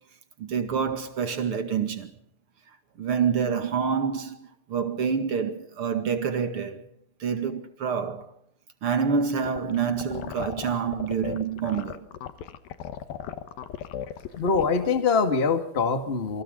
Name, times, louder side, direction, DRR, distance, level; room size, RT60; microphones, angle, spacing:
voice 1, 0.4-2.1 3.0-6.9 7.2-8.3 8.8-12.1, right 6 dB, 45° right, 2.4 m, -27 dB
sound 1, 9.4-15.0, left 10 dB, 75° left, 3.0 m, -36 dB
voice 2, 14.4-16.4, left 5 dB, 25° left, 1.5 m, -24 dB
27.5 x 25.0 x 3.9 m
omnidirectional pair, 4.3 m